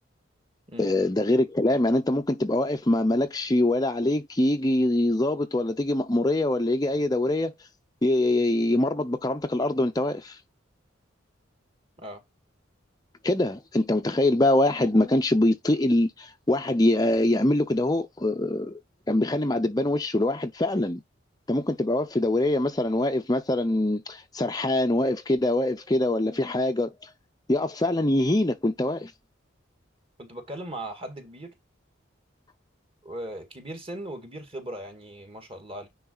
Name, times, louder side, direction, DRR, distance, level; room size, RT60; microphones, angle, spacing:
voice 1, 0.8-7.5 8.0-10.4 13.2-18.8 19.1-21.0 21.5-27.1 27.5-29.1, left 1 dB, 20° left, 0.7 m, -24 dB
voice 2, 30.2-31.5 33.0-35.9, right 1 dB, 30° right, 2.0 m, -38 dB
9.9 x 3.9 x 4.0 m
head